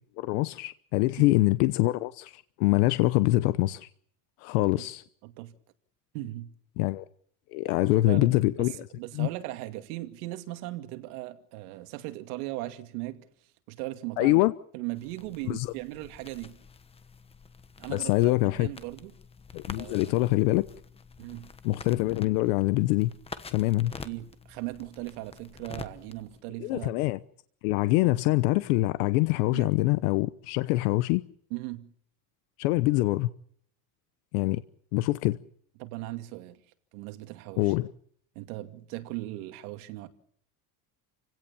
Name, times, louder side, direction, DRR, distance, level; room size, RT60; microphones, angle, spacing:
voice 1, 0.2-3.9 4.4-5.0 6.8-7.0 7.5-8.9 9.1-9.3 14.2-14.5 15.5-15.7 17.9-18.7 19.5-20.7 21.6-23.1 23.5-23.9 26.6-27.2 27.6-31.2 32.6-33.3 34.3-34.6 34.9-35.4 37.6-37.9, left 19 dB, 85° left, 1.0 m, -24 dB
voice 2, 4.5-4.9 5.2-5.5 6.1-6.5 7.8-8.3 8.6-8.7 8.9-13.3 13.7-14.4 14.7-16.6 17.8-19.1 19.7-20.1 21.2-21.5 24.0-26.9 29.5-29.7 31.5-31.9 35.8-36.6 36.9-37.7 38.4-40.1, right 17 dB, 90° right, 2.5 m, -38 dB
sound 1, 14.9-26.4, left 5 dB, 15° left, 1.1 m, -47 dB
29.0 x 17.0 x 7.1 m
cardioid pair, 165°, 43 cm